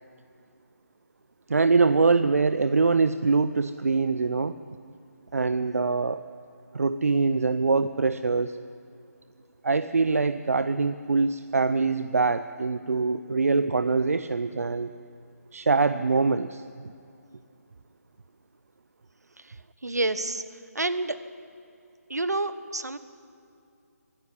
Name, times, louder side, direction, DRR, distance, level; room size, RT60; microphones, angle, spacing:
voice 1, 1.5-4.6 5.3-6.2 6.7-8.6 9.6-14.9 15.5-16.9, right 4 dB, 60° right, 12 dB, 0.6 m, -24 dB
voice 2, 19.8-20.4 20.7-21.2 22.1-23.0, right 2 dB, 75° right, 13 dB, 1.3 m, -28 dB
23.5 x 12.5 x 10.0 m, 2.6 s
figure-of-eight pair, 150°, 9 cm